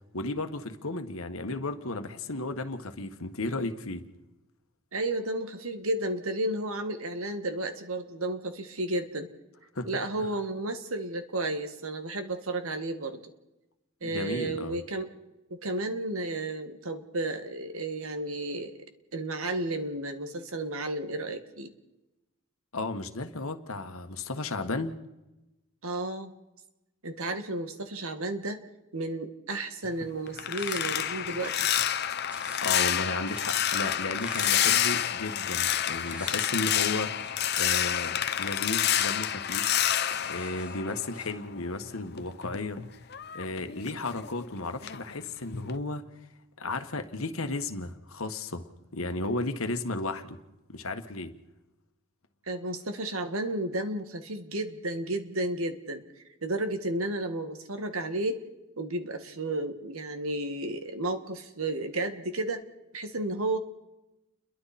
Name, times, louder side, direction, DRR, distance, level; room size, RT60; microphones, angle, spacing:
voice 1, 0.1-4.0 9.7-9.9 14.0-14.8 22.7-24.9 32.6-39.7 40.3-42.8 43.3-46.1 46.6-50.4 50.7-51.3, left 2 dB, 80° left, 1.6 m, -34 dB
voice 2, 4.9-9.3 9.9-13.2 14.0-15.1 15.5-18.8 19.1-21.7 25.8-26.3 27.0-28.6 28.9-31.7 52.5-56.0 56.4-58.4 58.8-62.6 62.9-63.6, right 2 dB, 80° right, 1.9 m, -32 dB
OM-FR-metalfence, 29.8-41.5 41.8-44.5 44.8-45.1 45.5-45.8, left 10 dB, 50° left, 0.8 m, -29 dB
sound 1, 30.6-31.7 32.3-33.7 34.1-35.2 35.7-39.3 39.6-41.4, left 1 dB, 5° right, 4.6 m, -46 dB
30.0 x 22.5 x 4.3 m
head